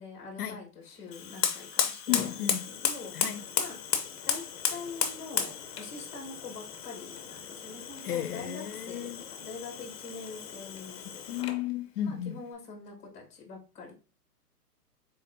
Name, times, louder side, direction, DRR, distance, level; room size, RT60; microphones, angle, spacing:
voice 1, 0.0-3.8 4.2-4.4 4.7-9.1 9.4-11.5 12.0-13.9, left 4 dB, 15° left, 1.4 m, -44 dB
Fire, 1.1-11.7, left 8 dB, 40° left, 0.8 m, -34 dB
voice 2, 2.1-2.7 3.1-3.4 8.0-9.2 11.3-12.4, left 11 dB, 70° left, 0.6 m, -33 dB
4.0 x 4.0 x 2.7 m
hypercardioid pair, 140°, 48 cm